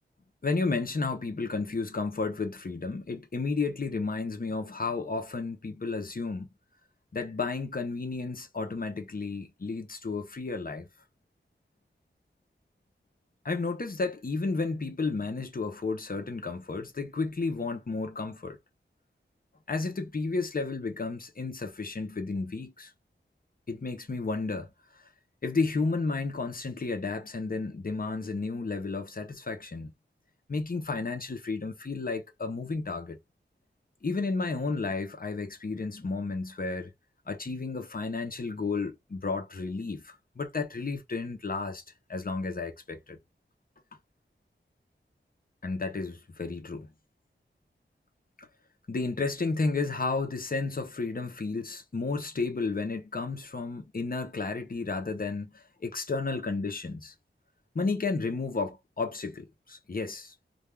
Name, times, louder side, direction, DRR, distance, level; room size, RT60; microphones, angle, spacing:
voice 1, 0.4-6.5 7.1-10.9 13.4-18.6 19.7-22.9 23.7-24.7 24.9-25.0 25.4-29.9 30.5-33.2 34.0-36.9 37.3-41.8 42.1-43.2 45.6-46.9 48.4-48.5 48.9-57.1 57.7-60.3, left 3 dB, 45° left, 0.7 m, -32 dB
2.5 x 2.3 x 3.2 m
wide cardioid pair, 65°, 20 cm